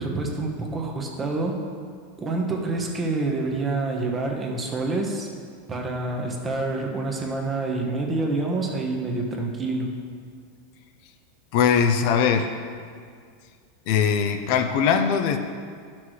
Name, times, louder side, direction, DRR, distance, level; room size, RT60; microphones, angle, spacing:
voice 1, 0.0-1.6 2.2-5.3 5.7-9.9, right 3 dB, 20° right, 1 dB, 1.1 m, -27 dB
voice 2, 11.5-12.5 13.9-15.4, left 7 dB, 55° left, 6 dB, 0.6 m, -21 dB
11.5 x 5.9 x 3.2 m, 2.1 s
supercardioid pair, 140°, 0 cm